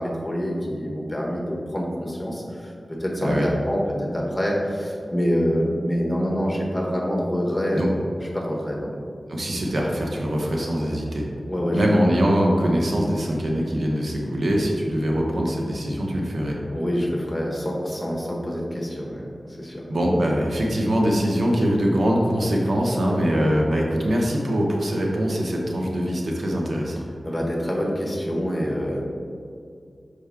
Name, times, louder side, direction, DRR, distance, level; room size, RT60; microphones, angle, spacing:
voice 1, 0.0-7.8 8.3-8.9 11.5-11.8 16.7-19.2 19.6-19.9 27.2-29.1, equal, 15° left, -2 dB, 1.1 m, -26 dB
voice 2, 9.3-11.3 11.7-16.6 19.9-27.0, equal, 80° right, -1 dB, 0.9 m, -23 dB
5.6 x 5.0 x 3.6 m, 2.4 s
wide cardioid pair, 85°, 0 cm